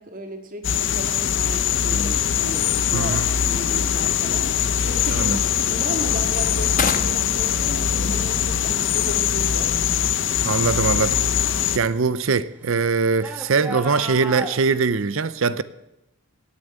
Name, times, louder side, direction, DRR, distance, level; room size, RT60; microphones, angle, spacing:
voice 1, 0.0-4.5 4.8-10.3, right 1 dB, 40° right, 2.0 m, -35 dB
sound 1, 0.6-11.8, left 8 dB, 55° left, 0.7 m, -22 dB
sound 2, 1.4-2.0 3.2-3.5 4.0-4.5 5.1-5.6 5.9-10.2 10.5-14.6, equal, 5° right, 1.4 m, -40 dB
sound 3, 2.4-11.6, left 5 dB, 35° left, 1.3 m, -36 dB
voice 2, 2.9-3.3 5.1-5.4 10.4-11.2 11.7-15.6, right 4 dB, 60° right, 0.6 m, -22 dB
18.5 x 7.1 x 9.0 m
head